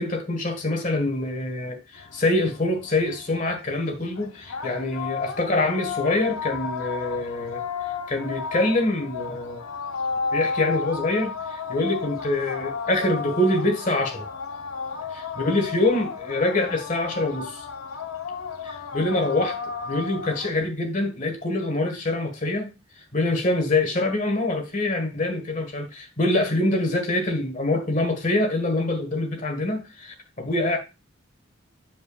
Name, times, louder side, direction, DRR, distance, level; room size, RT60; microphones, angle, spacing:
voice 1, 0.0-7.6 8.1-9.6 10.3-14.3 15.4-17.6 18.6-19.6 19.8-22.7 23.1-30.8, left 2 dB, 35° left, 1.6 m, -25 dB
sound 1, 1.9-20.5, left 5 dB, 85° left, 0.9 m, -33 dB
7.7 x 7.3 x 2.4 m
head